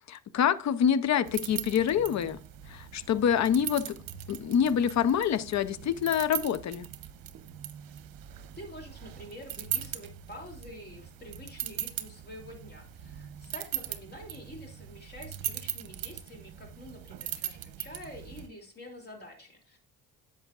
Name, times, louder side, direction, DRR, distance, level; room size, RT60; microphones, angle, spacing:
voice 1, 0.1-2.4 2.7-4.0 4.3-6.9, left 8 dB, 45° left, 16 dB, 0.7 m, -26 dB
sound 1, 1.2-18.5, right 11 dB, 60° right, 0.9 m, -40 dB
voice 2, 8.6-19.8, left 1 dB, 25° left, 2 dB, 3.0 m, -47 dB
10.0 x 7.2 x 2.5 m, 0.40 s
supercardioid pair, 80°, 40 cm